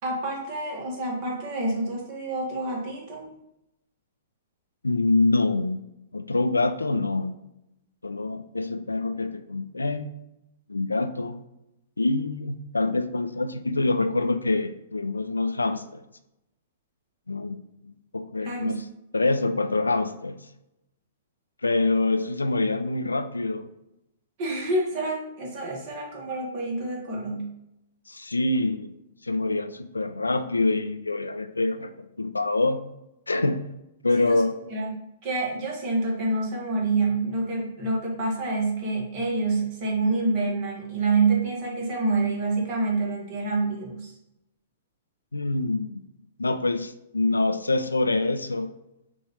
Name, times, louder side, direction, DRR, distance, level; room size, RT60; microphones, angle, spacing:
voice 1, 0.0-3.2 18.4-18.8 24.4-27.5 34.2-34.4 34.7-44.1, right 3 dB, 40° right, -2 dB, 1.6 m, -27 dB
voice 2, 4.8-5.8 6.1-7.4 8.0-10.1 10.7-11.4 12.0-16.0 17.3-17.6 17.8-18.8 19.1-20.4 21.6-23.7 28.1-28.9 29.2-31.9 32.2-32.8 33.3-33.6 34.0-34.6 45.3-46.0 46.4-48.7, left 2 dB, 85° left, 10 dB, 0.4 m, -25 dB
5.8 x 2.7 x 3.2 m, 0.87 s
figure-of-eight pair, 110°, 0 cm